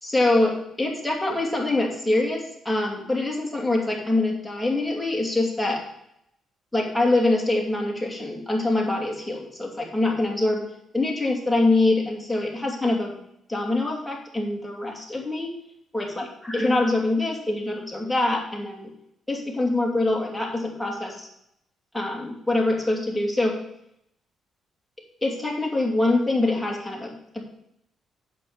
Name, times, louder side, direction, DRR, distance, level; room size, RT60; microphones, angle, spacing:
voice 1, 0.0-5.8 6.7-10.6 10.9-13.1 13.5-15.5 15.9-18.9 19.3-21.3 21.9-23.5 25.2-27.4, left 2 dB, 5° left, -1 dB, 2.7 m, -24 dB
8.4 x 7.6 x 5.1 m, 0.76 s
cardioid pair, 90°, 0 cm